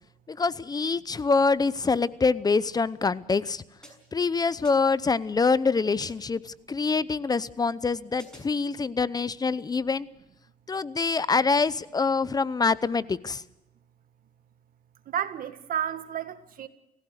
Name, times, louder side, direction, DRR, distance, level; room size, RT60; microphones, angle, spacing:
voice 1, 0.3-3.6 4.1-10.1 10.7-13.4, left 4 dB, 20° left, 0.7 m, -25 dB
sound 1, 3.8-4.3 4.6-5.1 6.0-6.4 8.2-8.7, right 1 dB, 5° left, 6.3 m, -52 dB
voice 2, 15.1-16.7, right 10 dB, 55° right, 1.8 m, -31 dB
29.0 x 16.0 x 6.5 m
cardioid pair, 110°, 17 cm